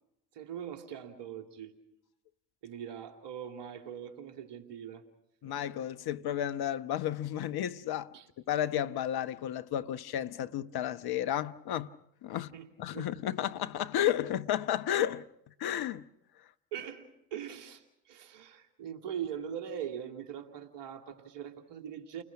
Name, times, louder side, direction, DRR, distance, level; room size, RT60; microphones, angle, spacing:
voice 1, 0.3-1.8 2.6-5.0 5.4-5.5 8.1-8.3 12.3-13.5 16.7-22.2, right 9 dB, 60° right, 2.9 m, -42 dB
voice 2, 5.4-8.1 8.5-11.9 12.2-12.5 12.8-15.2 15.6-16.1, left 11 dB, 50° left, 1.0 m, -32 dB
29.5 x 21.0 x 6.0 m
hypercardioid pair, 55°, 47 cm